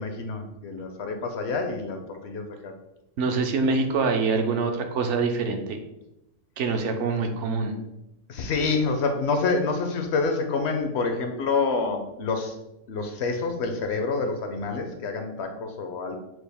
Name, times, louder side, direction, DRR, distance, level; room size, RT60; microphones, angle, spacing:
voice 1, 0.0-2.7 8.3-12.6 12.9-16.2, left 4 dB, 65° left, 5 dB, 0.7 m, -27 dB
voice 2, 3.2-5.8 6.6-7.7, right 4 dB, 65° right, 5 dB, 0.9 m, -25 dB
6.1 x 2.4 x 3.4 m, 0.89 s
omnidirectional pair, 1.4 m